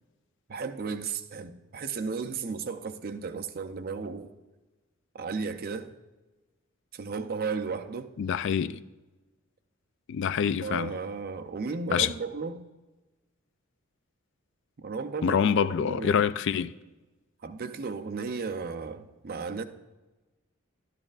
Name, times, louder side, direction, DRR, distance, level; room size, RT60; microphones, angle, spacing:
voice 1, 0.5-4.3 5.1-6.0 6.9-8.1 10.6-12.6 14.8-16.2 17.4-19.7, right 4 dB, 45° right, 0.5 m, -34 dB
voice 2, 8.2-8.8 10.1-11.0 11.9-12.1 15.2-16.7, left 7 dB, 60° left, 0.3 m, -26 dB
12.0 x 11.0 x 2.4 m
head